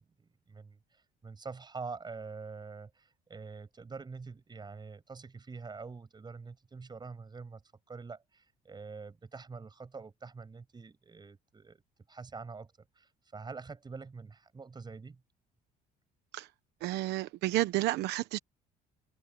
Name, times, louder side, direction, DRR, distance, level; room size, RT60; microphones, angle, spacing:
voice 1, 0.0-7.6 7.9-11.8 12.1-15.2, right 4 dB, 25° right, 6.7 m, -46 dB
voice 2, 16.8-18.4, right 17 dB, 85° right, 1.1 m, -31 dB
cardioid pair, 110°, 17 cm